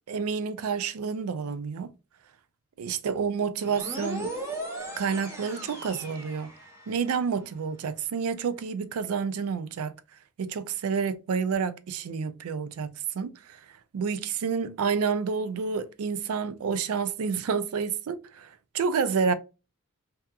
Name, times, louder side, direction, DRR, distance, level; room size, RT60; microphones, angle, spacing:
voice 1, 0.0-1.9 2.8-4.3 5.0-6.5 6.9-10.0 10.4-13.6 13.9-19.3, right 6 dB, 75° right, 0.4 m, -29 dB
sound 1, 3.6-7.1, right 1 dB, 15° right, 0.8 m, -38 dB
2.7 x 2.3 x 2.3 m
head